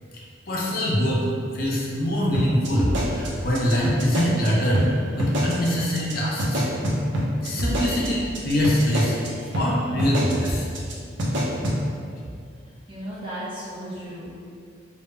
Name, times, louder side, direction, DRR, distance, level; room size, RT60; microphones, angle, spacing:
voice 1, 0.5-1.3 1.5-4.9 5.2-6.7 7.4-9.2 9.5-10.7, equal, 50° left, -5 dB, 0.4 m, -24 dB
sound 1, 2.3-4.5 4.7-4.9 5.2-5.7 5.9-6.1 6.4-9.3 9.5-9.7 10.0-10.5 10.7-10.9 11.2-11.8, equal, 75° right, 0.5 m, -25 dB
voice 2, 12.6-14.3, right 1 dB, 25° right, -9 dB, 0.7 m, -35 dB
2.0 x 2.0 x 3.4 m, 2.3 s
head